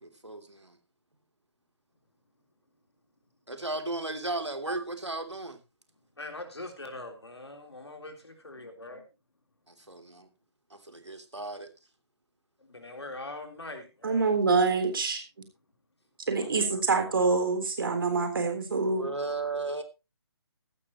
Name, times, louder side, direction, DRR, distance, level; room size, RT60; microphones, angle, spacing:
voice 1, 0.0-0.8 3.5-5.6 9.7-10.3 10.7-11.7 16.4-16.7 19.0-19.8, right 2 dB, 85° right, 6 dB, 2.9 m, -35 dB
voice 2, 6.2-9.0 12.6-14.3, left 2 dB, 70° left, 4 dB, 3.6 m, -42 dB
voice 3, 14.0-15.2 16.3-19.1, right 4 dB, 50° right, 6 dB, 3.6 m, -26 dB
15.5 x 12.5 x 3.0 m, 0.27 s
figure-of-eight pair, 145°, 14 cm